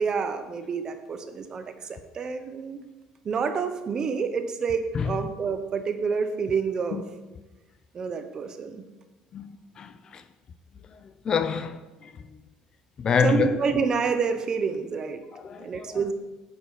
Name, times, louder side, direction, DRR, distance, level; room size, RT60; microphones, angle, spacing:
voice 1, 0.0-2.8 3.2-7.1 7.9-8.8 13.2-15.2 15.6-16.1, right 5 dB, 30° right, 0.8 m, -28 dB
voice 2, 9.8-10.2 11.0-12.1 13.0-13.6 15.3-16.0, left 6 dB, 35° left, 0.5 m, -27 dB
9.3 x 6.2 x 4.9 m
cardioid pair, 145°, 2 cm